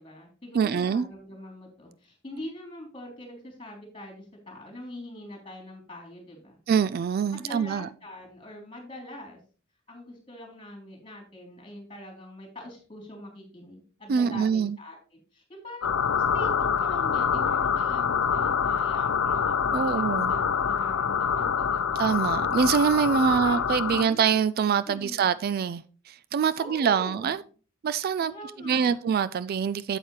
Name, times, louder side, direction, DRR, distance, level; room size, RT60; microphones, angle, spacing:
voice 1, 0.0-6.6 7.3-9.4 9.9-16.0 16.3-16.5 16.8-22.1 23.3-23.6 23.9-24.3 24.9-25.3 26.6-27.5 28.2-29.0, left 1 dB, 25° left, 3.5 m, -43 dB
voice 2, 0.5-1.1 6.7-7.9 14.1-14.8 19.7-20.3 22.0-27.4 27.8-28.3 28.6-30.0, right 6 dB, 50° right, 0.3 m, -25 dB
sound 1, 15.8-24.0, left 7 dB, 75° left, 0.6 m, -26 dB
8.7 x 8.1 x 3.2 m
head